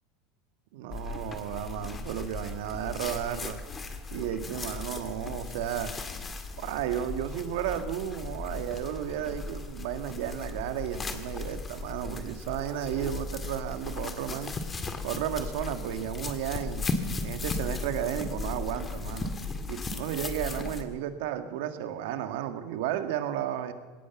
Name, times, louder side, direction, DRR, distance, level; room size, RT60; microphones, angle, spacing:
voice 1, 0.7-3.6 4.1-5.9 6.6-14.5 15.0-16.9 17.2-19.3 19.7-23.7, right 10 dB, 75° right, 8 dB, 1.8 m, -33 dB
sound 1, 0.9-20.8, left 3 dB, 20° left, 2.0 m, -37 dB
21.0 x 17.5 x 7.1 m, 1.4 s
supercardioid pair, 130°, 0 cm